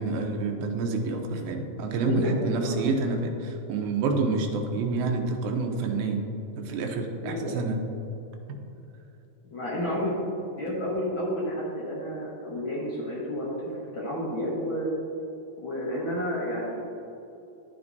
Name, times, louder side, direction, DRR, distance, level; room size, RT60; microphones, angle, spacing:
voice 1, 0.0-6.2 6.6-7.8 8.5-8.6, right 3 dB, 90° right, 3 dB, 2.6 m, -28 dB
voice 2, 2.0-3.0 7.2-7.5 9.5-10.2 10.6-14.9 15.6-16.8, equal, 55° left, -6 dB, 1.4 m, -31 dB
11.0 x 7.8 x 2.7 m, 2.8 s
omnidirectional pair, 4.1 m